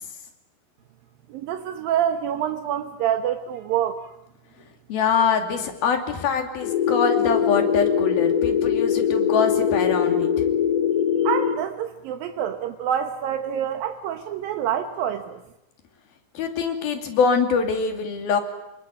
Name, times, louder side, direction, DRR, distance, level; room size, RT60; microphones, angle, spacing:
voice 1, 1.3-4.1 11.2-15.4, right 9 dB, 75° right, 6 dB, 2.9 m, -26 dB
voice 2, 4.9-10.5 16.3-18.4, left 5 dB, 90° left, 5 dB, 4.6 m, -24 dB
sound 1, 6.6-11.6, left 8 dB, 65° left, 3.5 m, -22 dB
27.0 x 22.0 x 10.0 m, 0.87 s
omnidirectional pair, 4.2 m